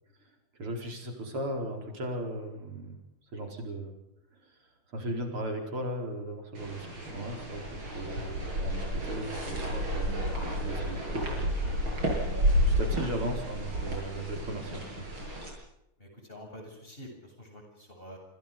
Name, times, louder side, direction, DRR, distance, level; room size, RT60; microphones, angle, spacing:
voice 1, 0.6-3.0 3.3-3.9 4.4-4.5 4.9-11.9 12.6-15.1, right 1 dB, 85° right, 3 dB, 5.4 m, -37 dB
sound 1, 6.5-15.5, equal, 65° right, 8.6 m, -31 dB
voice 2, 16.0-18.2, equal, 25° left, 2 dB, 7.9 m, -47 dB
27.5 x 26.0 x 5.2 m, 0.88 s
omnidirectional pair, 2.3 m